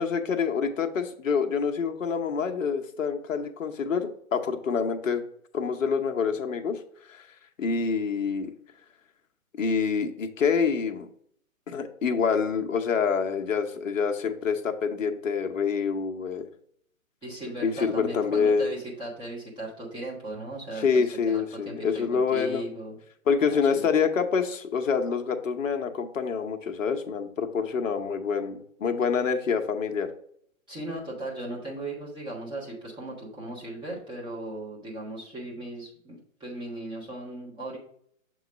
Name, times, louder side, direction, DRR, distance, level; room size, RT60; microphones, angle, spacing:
voice 1, 0.0-5.2 5.5-6.8 7.1-7.2 7.6-8.5 9.6-11.1 11.7-16.5 17.6-18.7 20.8-22.6 23.3-30.1, left 6 dB, 65° left, 5 dB, 0.9 m, -26 dB
voice 2, 17.2-23.0 23.4-23.9 30.7-37.8, right 1 dB, 10° right, -5 dB, 1.2 m, -37 dB
7.2 x 3.1 x 5.0 m, 0.65 s
hypercardioid pair, 135°, 41 cm